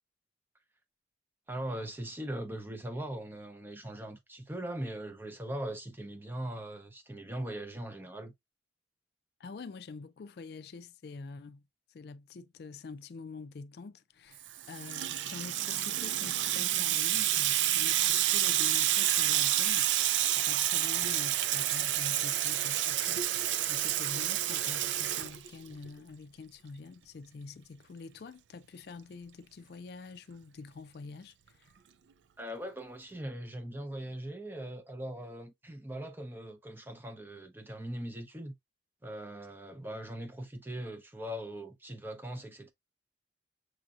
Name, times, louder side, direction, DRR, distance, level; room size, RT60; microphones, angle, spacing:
voice 1, 1.5-8.3 32.4-38.6 39.0-42.7, right 1 dB, 10° right, 0.7 m, -40 dB
voice 2, 9.4-11.6 11.9-19.9 20.3-23.3 23.7-31.7, left 4 dB, 60° left, 0.4 m, -46 dB
Water tap faucet / Sink (filling or washing), 14.4-25.9, right 12 dB, 85° right, 0.4 m, -29 dB
6.2 x 2.7 x 2.3 m
head